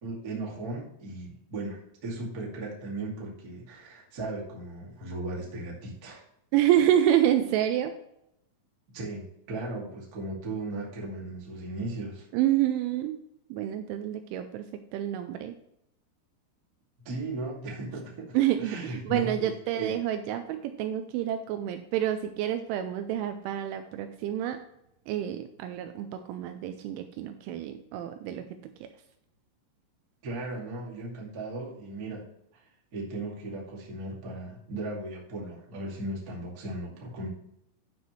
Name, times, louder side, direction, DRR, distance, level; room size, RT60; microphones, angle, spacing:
voice 1, 0.0-6.2 8.9-12.2 17.0-19.5 19.8-20.0 30.2-32.3 32.5-32.6 32.9-37.3, right 2 dB, 40° right, -4 dB, 1.2 m, -37 dB
voice 2, 6.5-8.0 12.3-13.2 13.5-14.7 14.9-15.6 18.3-24.6 25.1-28.9, right 11 dB, 85° right, 8 dB, 2.8 m, -28 dB
11.5 x 6.0 x 3.1 m, 0.77 s
omnidirectional pair, 5.8 m